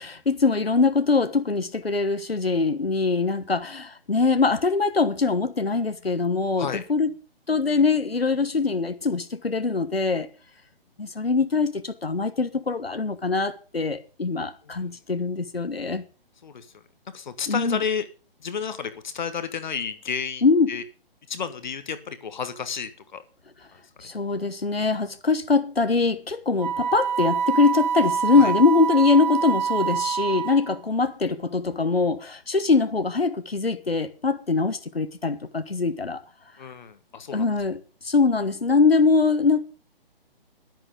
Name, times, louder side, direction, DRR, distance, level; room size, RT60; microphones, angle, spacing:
voice 1, 0.0-7.1 7.5-10.3 11.0-16.0 17.5-17.8 20.4-20.7 24.0-36.2 37.3-37.8 38.0-39.6, left 4 dB, 80° left, 1.3 m, -23 dB
voice 2, 14.6-14.9 16.4-16.7 17.1-18.1 18.4-20.8 21.3-23.2 23.7-24.1 28.4-28.5 36.6-37.5, left 6 dB, 50° left, 1.4 m, -32 dB
Wind instrument woodwind instrument, 26.6-30.8, right 6 dB, 45° right, 1.1 m, -26 dB
11.0 x 10.5 x 5.1 m
figure-of-eight pair, 135°, 30 cm